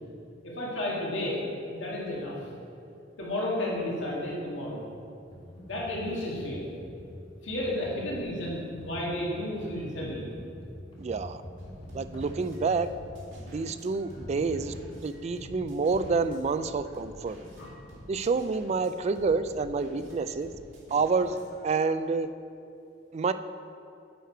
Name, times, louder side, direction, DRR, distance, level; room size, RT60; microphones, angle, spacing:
voice 1, 0.4-1.4 1.7-2.4 3.2-4.8 5.7-6.7 7.4-10.3 14.1-14.2 15.4-15.5 17.6-17.7, left 1 dB, 80° left, -5 dB, 1.7 m, -32 dB
Computer keyboard, 5.3-14.8, equal, 30° left, 1.7 m, -45 dB
voice 2, 11.0-11.4 11.9-12.9 13.5-14.7 15.0-17.4 18.1-20.5 20.9-21.4 21.6-22.3 23.1-23.3, right 4 dB, 35° right, 11 dB, 0.3 m, -28 dB
sound 1, 11.6-21.7, equal, 90° right, 2.2 m, -50 dB
9.4 x 6.5 x 4.5 m, 2.6 s
head